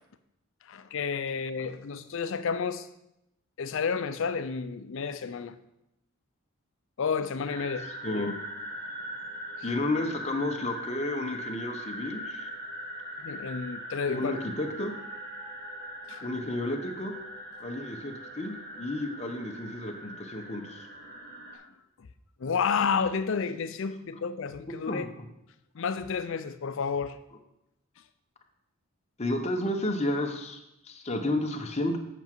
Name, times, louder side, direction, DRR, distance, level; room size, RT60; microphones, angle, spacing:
voice 1, 0.7-2.9 3.6-5.6 7.0-8.3 13.2-14.4 16.1-16.3 22.4-25.1 25.7-27.2, left 5 dB, 60° left, 12 dB, 0.4 m, -31 dB
sound 1, 7.4-21.6, equal, 50° right, 1.4 m, -41 dB
voice 2, 8.0-8.3 9.6-12.5 14.1-14.9 16.2-17.1 17.6-20.9 24.8-25.1 29.2-32.0, left 1 dB, 30° left, 3 dB, 0.8 m, -32 dB
8.0 x 5.9 x 4.5 m, 0.85 s
head